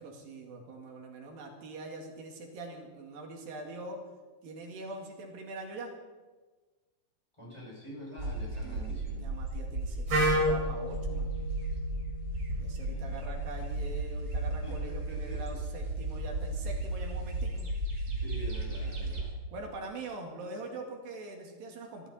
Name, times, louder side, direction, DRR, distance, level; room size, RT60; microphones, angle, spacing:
voice 1, 0.0-4.0 4.4-5.9 8.6-8.9 9.2-11.4 12.6-17.7 19.5-22.1, right 2 dB, 85° right, 2 dB, 3.9 m, -43 dB
voice 2, 7.4-9.3 12.8-13.2 14.6-15.6 18.0-19.3, left 1 dB, 10° left, -5 dB, 6.2 m, -46 dB
sound 1, 8.2-19.3, right 2 dB, 30° right, 2.8 m, -34 dB
Wind instrument woodwind instrument, 10.1-14.0, equal, 50° right, 6.3 m, -33 dB
22.5 x 14.0 x 4.2 m, 1.3 s
omnidirectional pair, 3.9 m